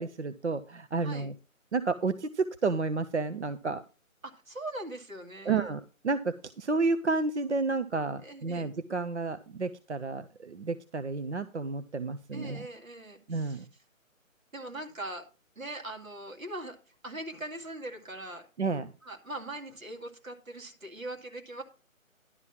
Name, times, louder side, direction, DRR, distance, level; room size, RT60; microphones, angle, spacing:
voice 1, 0.0-1.3 1.7-3.8 5.5-12.6 13.3-13.6 18.6-18.9, right 4 dB, 55° right, 11 dB, 0.6 m, -31 dB
voice 2, 1.0-1.3 4.2-5.7 8.2-8.7 12.3-13.7 14.5-15.3 15.6-16.8 17.0-18.5 19.0-21.6, right 1 dB, 75° right, 4 dB, 2.4 m, -41 dB
11.0 x 5.4 x 5.8 m, 0.33 s
figure-of-eight pair, 155°, 41 cm